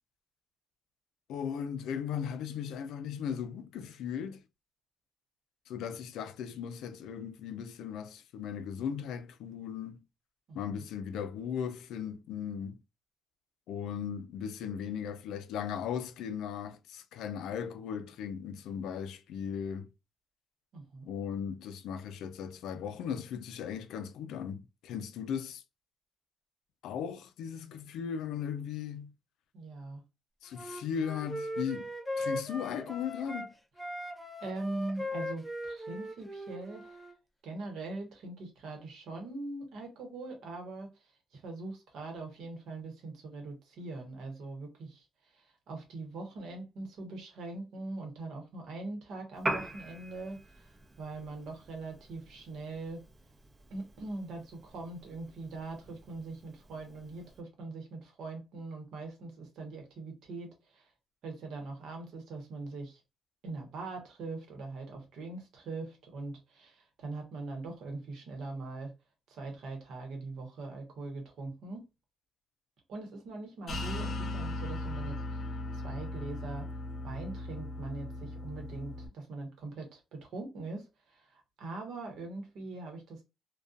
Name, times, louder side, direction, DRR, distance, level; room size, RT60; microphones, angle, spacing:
voice 1, 1.3-4.4 5.7-10.0 10.5-12.8 13.7-19.9 21.1-25.6 26.8-29.1 30.4-31.9 32.2-33.5, left 8 dB, 85° left, 0.3 m, -37 dB
voice 2, 20.7-21.1 29.5-30.0 34.4-37.0 37.4-40.9 41.3-45.0 45.3-50.7 51.0-53.0 53.7-60.9 61.2-63.0 63.4-68.9 69.3-71.9 72.9-75.4 75.7-76.7 77.0-83.2, right 3 dB, 80° right, 1.0 m, -42 dB
Wind instrument woodwind instrument, 30.5-33.5 33.8-37.1, left 1 dB, 10° left, 0.6 m, -39 dB
Piano, 49.3-57.4, right 1 dB, 30° right, 0.7 m, -43 dB
sound 1, 73.7-79.1, left 2 dB, 55° left, 0.6 m, -38 dB
2.4 x 2.2 x 2.5 m
cardioid pair, 90°, 0 cm